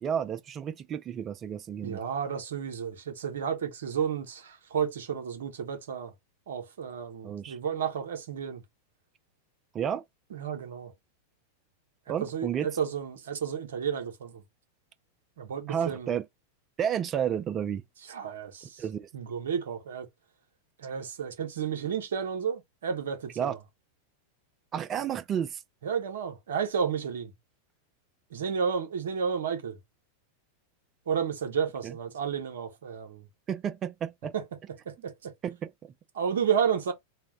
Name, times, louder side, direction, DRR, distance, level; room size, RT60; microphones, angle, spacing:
voice 1, 0.0-2.0 7.2-7.6 9.7-10.0 12.1-12.8 15.7-16.3 16.8-17.8 18.8-19.1 23.4-23.6 24.7-25.6 31.8-32.0 33.5-34.3 35.4-35.9, right 8 dB, 25° right, 0.4 m, -31 dB
voice 2, 1.8-6.1 6.5-8.6 10.3-10.9 12.2-14.4 15.4-16.1 18.1-18.8 19.1-20.1 20.8-23.3 25.8-27.3 28.3-29.8 31.1-33.2 34.3-34.4 34.9-35.3 36.1-36.9, right 7 dB, 60° right, 0.7 m, -31 dB
2.3 x 2.1 x 3.5 m
figure-of-eight pair, 90°, 0 cm